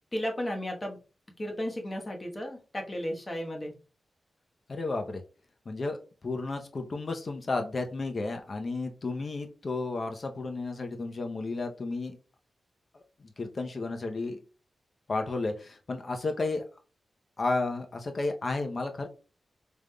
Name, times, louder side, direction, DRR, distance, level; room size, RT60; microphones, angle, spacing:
voice 1, 0.1-1.0 1.4-3.7, left 1 dB, 25° left, 2 dB, 1.1 m, -34 dB
voice 2, 4.7-5.2 5.7-6.0 6.2-12.2 13.4-14.4 15.1-16.6 17.4-19.1, left 3 dB, 45° left, 5 dB, 0.6 m, -32 dB
5.0 x 3.4 x 2.2 m, 0.34 s
wide cardioid pair, 100°, 0 cm